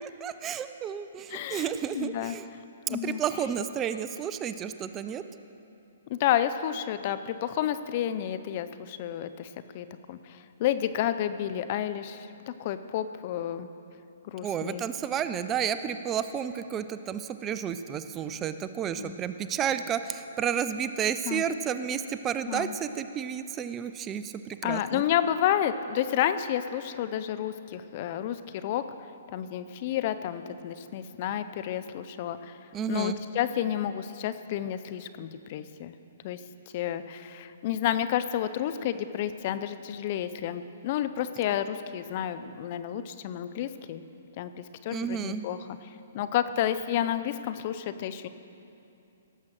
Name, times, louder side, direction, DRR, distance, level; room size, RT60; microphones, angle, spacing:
voice 1, 0.0-2.5 2.9-5.2 14.4-25.0 32.7-33.2 44.9-45.4, right 8 dB, 20° right, 11 dB, 0.5 m, -31 dB
voice 2, 1.3-1.7 1.9-2.4 2.9-3.2 6.1-9.5 9.7-12.3 12.6-13.7 14.2-14.8 19.0-19.2 21.3-21.4 22.5-22.8 24.6-28.4 28.6-28.8 29.3-32.5 32.9-35.9 36.2-36.4 36.7-44.0 44.4-45.6 46.1-48.3, left 11 dB, 45° left, 12 dB, 0.6 m, -30 dB
17.5 x 7.3 x 6.5 m, 2.7 s
hypercardioid pair, 135°, 0 cm